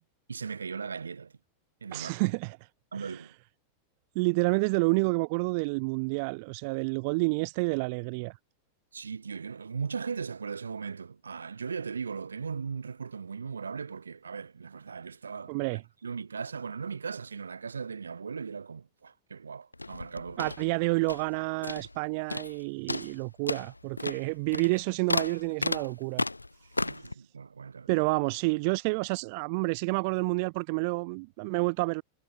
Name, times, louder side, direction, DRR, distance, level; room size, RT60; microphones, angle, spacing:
voice 1, 0.3-1.3 1.8-2.1 2.9-3.3 8.9-20.5 26.8-28.1, right 5 dB, 75° right, 6.4 m, -38 dB
voice 2, 1.9-2.6 2.9-3.3 4.1-8.4 15.5-15.8 20.4-26.2 27.9-32.0, right 30 dB, 45° right, 2.3 m, -29 dB
sound 1, 19.7-21.4 21.6-22.0 22.3-22.6 22.9-27.1, left 2 dB, 85° left, 1.4 m, -34 dB
figure-of-eight pair, 90°, 0 cm